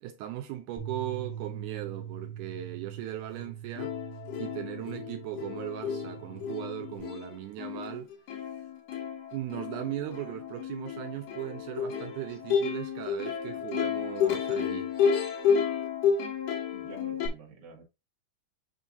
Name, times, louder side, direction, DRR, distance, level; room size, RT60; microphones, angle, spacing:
voice 1, 0.0-4.0 4.4-8.1 9.3-15.0, right 14 dB, 80° right, 2.0 m, -38 dB
sound 1, 0.8-7.0, right 9 dB, 25° left, 3.9 m, -42 dB
Plucked string instrument, 3.4-3.5 3.8-17.3, left 7 dB, 70° left, 3.0 m, -31 dB
voice 2, 16.7-17.8, right 3 dB, 45° right, 2.6 m, -48 dB
7.0 x 5.6 x 2.5 m
omnidirectional pair, 3.7 m